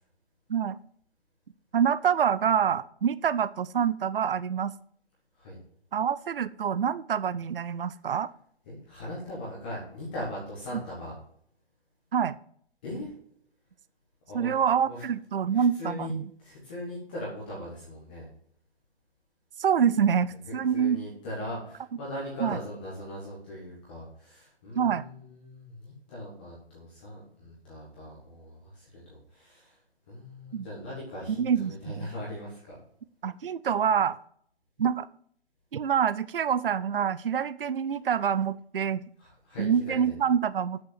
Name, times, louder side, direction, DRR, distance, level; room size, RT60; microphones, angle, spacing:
voice 1, 1.7-4.7 5.9-8.3 12.1-12.4 14.3-16.3 19.6-21.0 22.4-22.6 24.7-25.0 30.5-30.7 31.4-32.1 33.2-34.2 34.8-35.1 35.7-39.0 39.6-40.8, right 8 dB, 55° right, 16 dB, 0.5 m, -26 dB
voice 2, 8.7-11.2 12.8-13.1 14.3-14.6 14.8-15.0 15.5-16.1 16.4-18.3 20.5-29.8 30.1-32.7 39.2-40.1, left 1 dB, 10° left, -7 dB, 1.1 m, -40 dB
8.3 x 6.7 x 7.3 m, 0.64 s
hypercardioid pair, 180°, 33 cm